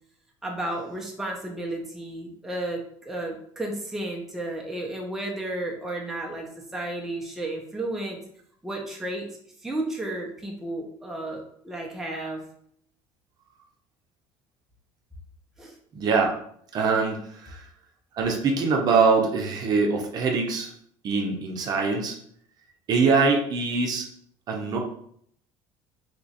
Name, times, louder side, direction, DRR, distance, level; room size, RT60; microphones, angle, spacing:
voice 1, 0.4-8.2 8.6-9.3 9.6-12.4 15.6-15.8, right 1 dB, 5° right, -1 dB, 0.6 m, -33 dB
voice 2, 15.9-16.3 16.7-17.6 18.1-20.7 21.0-22.2 22.9-24.1 24.5-24.8, right 4 dB, 45° right, 2 dB, 0.7 m, -23 dB
2.9 x 2.3 x 4.1 m, 0.65 s
cardioid pair, 125°, 10 cm